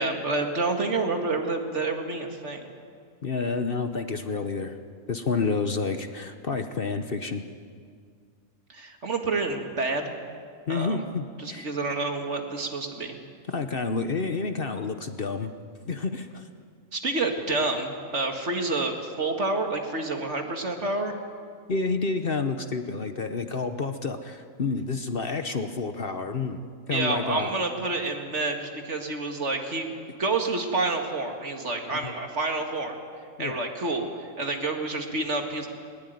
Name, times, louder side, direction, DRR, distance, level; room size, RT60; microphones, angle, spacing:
voice 1, 0.0-2.6 8.7-10.1 10.7-11.0 11.4-13.2 16.9-21.2 26.9-29.9 30.2-33.0 33.4-35.7, right 3 dB, 55° right, 4 dB, 2.3 m, -28 dB
voice 2, 3.2-4.8 5.1-7.4 10.7-11.7 13.5-15.5 15.9-16.5 21.7-27.5 32.0-32.1 33.4-33.6, left 4 dB, 45° left, 8 dB, 1.1 m, -29 dB
20.0 x 20.0 x 9.3 m, 2.1 s
omnidirectional pair, 1.4 m